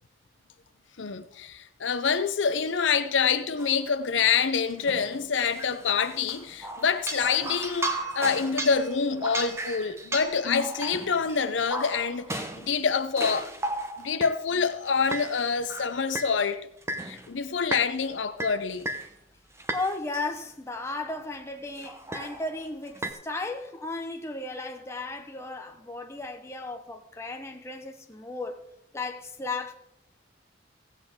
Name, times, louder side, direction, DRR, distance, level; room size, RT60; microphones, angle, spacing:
voice 1, 1.0-13.5 14.0-16.6 17.0-18.9, left 6 dB, 80° left, 0.7 m, -26 dB
sound 1, 3.6-3.9 4.7-14.3 14.9-16.4 16.8-17.4 17.7-18.1 18.4-19.1 19.6-20.3 21.1-21.3 21.8-23.1, right 1 dB, 15° right, 0.9 m, -35 dB
voice 2, 19.7-28.6 28.9-29.7, left 3 dB, 15° left, 1.0 m, -35 dB
16.0 x 8.2 x 3.7 m
head